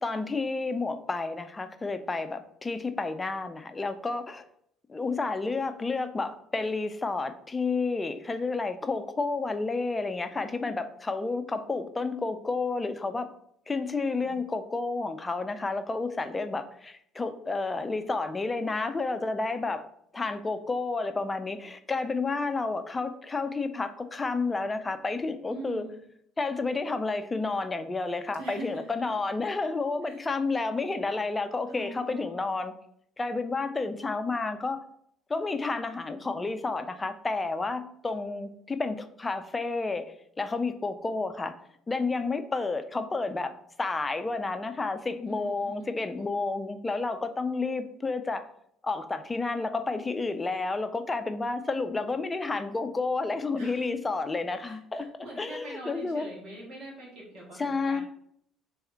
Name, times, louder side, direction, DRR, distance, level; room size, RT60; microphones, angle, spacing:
voice 1, 0.0-4.5 4.9-13.3 13.7-19.8 20.1-25.8 26.4-32.7 33.2-34.8 35.3-41.5 41.9-43.5 43.8-48.5 48.8-55.1 55.4-56.3 57.6-58.0, left 3 dB, 25° left, 9 dB, 0.5 m, -30 dB
voice 2, 13.9-14.4 25.5-26.0 28.4-29.1 29.4-29.7 30.0-30.2 31.7-32.4 45.3-45.7 53.5-53.9 54.6-58.0, right 2 dB, 60° right, -4 dB, 1.7 m, -43 dB
3.5 x 3.4 x 4.4 m, 0.70 s
hypercardioid pair, 60°, 0 cm